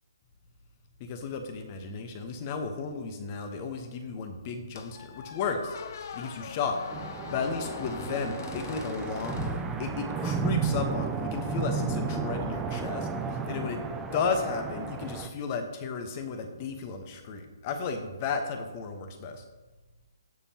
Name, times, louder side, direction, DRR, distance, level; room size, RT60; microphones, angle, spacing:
voice 1, 1.0-5.7 6.1-6.8 7.3-13.1 13.5-19.4, left 5 dB, 30° left, 6 dB, 1.2 m, -34 dB
Squeak, 4.8-10.3, left 6 dB, 50° left, 0.6 m, -42 dB
sound 1, 6.9-15.3, right 5 dB, 10° right, 0.5 m, -33 dB
16.0 x 5.4 x 2.9 m, 1.2 s
hypercardioid pair, 145°, 2 cm